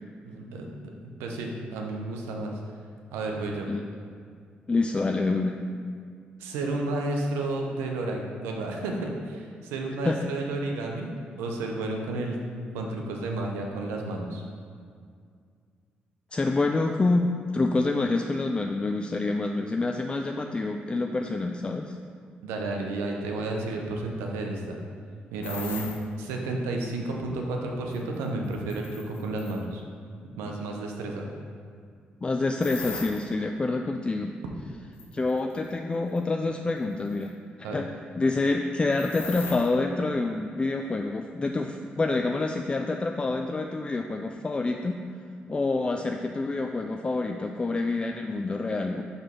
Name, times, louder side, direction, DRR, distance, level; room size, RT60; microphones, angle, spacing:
voice 1, 0.2-0.7 1.2-2.6 3.1-3.7 6.4-12.4 12.7-14.4 22.4-24.8 25.3-25.8 26.2-29.8 30.4-31.3 37.6-37.8, right 2 dB, 90° right, 1 dB, 0.7 m, -31 dB
voice 2, 4.7-5.6 10.0-10.3 16.3-22.0 32.2-34.3 35.1-37.3 37.7-37.9 38.2-45.0 45.5-49.0, left 3 dB, 25° left, 4 dB, 0.3 m, -27 dB
sound 1, 25.4-26.0 27.9-29.6 32.6-33.2 35.0-35.7 36.2-36.3 37.1-37.3 38.9-39.7, left 5 dB, 75° left, 0.8 m, -39 dB
5.2 x 4.2 x 4.4 m, 2.2 s
supercardioid pair, 55°, 4 cm